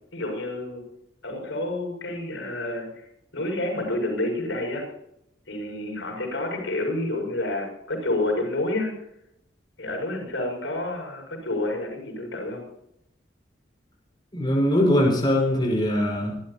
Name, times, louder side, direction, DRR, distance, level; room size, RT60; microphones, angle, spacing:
voice 1, 0.1-0.9 1.2-2.9 3.3-4.8 5.5-8.9 9.8-12.6, left 2 dB, 85° left, 2 dB, 6.8 m, -29 dB
voice 2, 14.3-16.4, left 1 dB, 25° left, -1 dB, 5.4 m, -21 dB
26.5 x 12.5 x 2.9 m, 0.75 s
head